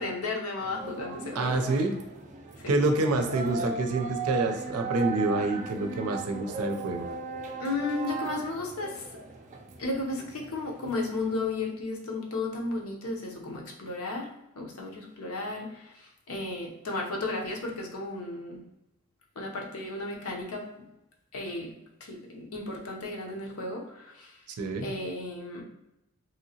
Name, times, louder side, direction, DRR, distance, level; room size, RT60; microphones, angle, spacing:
voice 1, 0.0-1.8 2.6-2.7 7.6-9.1 9.8-18.6 19.4-20.7 21.3-21.7 22.0-24.4 24.8-25.6, left 2 dB, 75° left, 0 dB, 0.7 m, -34 dB
sound 1, 0.6-11.5, right 5 dB, 35° right, 0.4 m, -38 dB
voice 2, 1.4-2.0 2.7-7.1 24.6-24.9, right 2 dB, 90° right, 5 dB, 0.5 m, -27 dB
2.9 x 2.8 x 2.8 m, 0.89 s
head